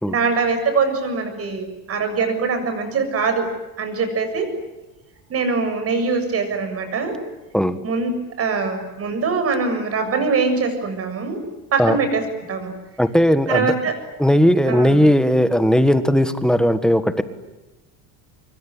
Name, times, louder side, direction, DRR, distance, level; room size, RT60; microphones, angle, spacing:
voice 1, 0.1-3.5 3.8-4.5 5.3-7.2 7.8-11.4 11.7-12.7 13.5-14.0 14.7-15.0, right 4 dB, 35° right, 7 dB, 7.3 m, -23 dB
voice 2, 13.0-13.7 14.2-17.2, equal, ahead, 11 dB, 1.6 m, -17 dB
26.0 x 23.5 x 9.7 m, 1.1 s
cardioid pair, 140°, 42 cm